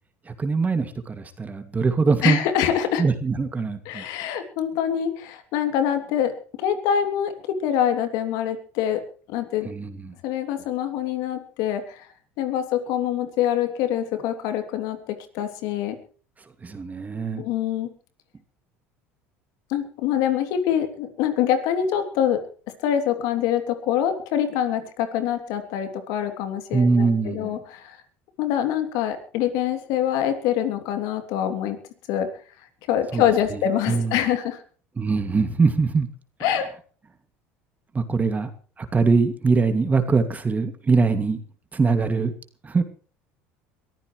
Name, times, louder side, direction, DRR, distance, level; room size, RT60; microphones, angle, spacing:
voice 1, 0.3-2.4 3.0-4.0 9.7-10.1 16.6-17.4 26.7-27.5 33.1-34.2 35.0-36.1 37.9-38.5 38.8-41.4 41.7-42.3 42.6-42.8, right 4 dB, 25° right, 8 dB, 2.4 m, -22 dB
voice 2, 2.2-3.0 3.8-6.3 6.6-9.0 9.3-9.7 10.2-12.1 12.4-16.0 17.4-17.9 19.7-22.4 22.8-28.0 28.4-31.8 32.1-32.3 32.9-34.6 36.4-36.7, left 10 dB, 70° left, 8 dB, 3.1 m, -25 dB
22.5 x 14.5 x 3.3 m, 0.42 s
hypercardioid pair, 85°, 7 cm